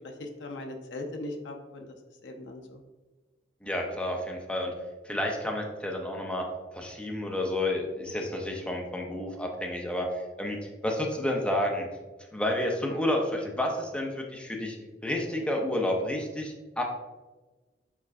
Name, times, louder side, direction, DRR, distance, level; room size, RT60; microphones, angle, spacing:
voice 1, 0.2-1.9 2.2-2.8, left 2 dB, 80° left, 3 dB, 0.5 m, -39 dB
voice 2, 3.6-4.7 5.0-6.5 6.7-11.9 12.3-14.8 15.0-16.8, left 1 dB, 5° left, 0 dB, 0.5 m, -30 dB
4.6 x 4.4 x 2.4 m, 1.2 s
head